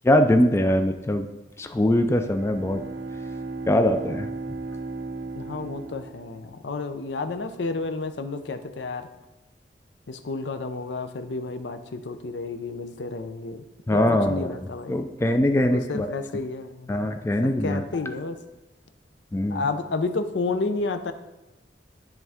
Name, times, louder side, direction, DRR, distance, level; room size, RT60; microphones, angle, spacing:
voice 1, 0.0-1.3 1.6-2.8 3.7-4.3 13.9-14.6 14.9-16.1 16.9-17.8 19.3-19.6, left 1 dB, 15° left, 7 dB, 0.3 m, -22 dB
Bowed string instrument, 2.2-6.9, right 3 dB, 85° right, 0.6 m, -36 dB
voice 2, 5.4-9.1 10.1-13.6 13.9-15.0 15.7-17.1 17.4-18.4 19.5-21.1, left 3 dB, 70° left, 9 dB, 0.5 m, -31 dB
10.5 x 3.6 x 3.5 m, 1.0 s
head